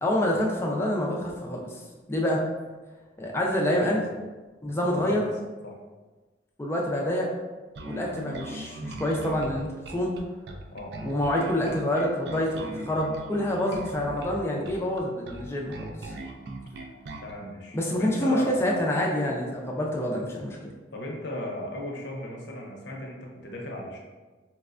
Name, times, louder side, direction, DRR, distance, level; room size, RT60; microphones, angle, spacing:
voice 1, 0.0-1.8 2.1-2.4 3.2-4.0 4.6-5.2 6.6-7.3 7.9-10.2 11.0-16.1 17.7-20.7, left 1 dB, 15° left, -2 dB, 0.4 m, -27 dB
voice 2, 4.9-5.2 5.6-5.8 10.7-10.9 17.2-18.6 20.7-24.0, left 1 dB, 65° left, -1 dB, 0.6 m, -37 dB
Bass guitar, 7.8-17.3, right 2 dB, 60° right, 0.3 m, -39 dB
4.1 x 2.1 x 2.4 m, 1.3 s
head